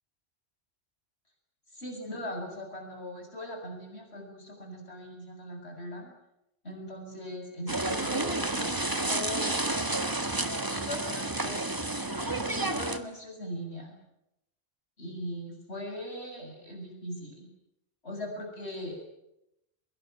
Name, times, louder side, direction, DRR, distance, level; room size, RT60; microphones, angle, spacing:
voice 1, 1.7-6.1 6.6-9.7 10.7-11.7 12.6-14.0 15.0-17.5 18.0-19.0, left 1 dB, 85° left, 3 dB, 8.2 m, -40 dB
sound 1, 7.7-13.0, right 2 dB, 20° right, 1.8 m, -30 dB
24.0 x 22.5 x 9.5 m, 0.87 s
omnidirectional pair, 1.1 m